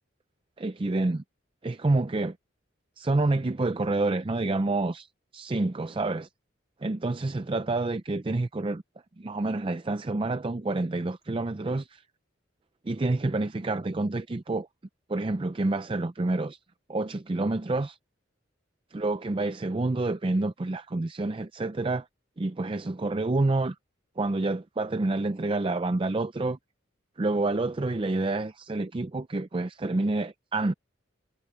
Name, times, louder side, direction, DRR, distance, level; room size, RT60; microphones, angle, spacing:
voice 1, 0.6-1.2 1.6-2.4 3.0-6.3 6.8-8.8 9.2-12.0 12.8-14.7 15.1-16.6 16.9-18.0 18.9-22.1 22.4-23.8 24.2-26.6 27.2-30.7, right 2 dB, 25° right, 0.5 m, -28 dB
head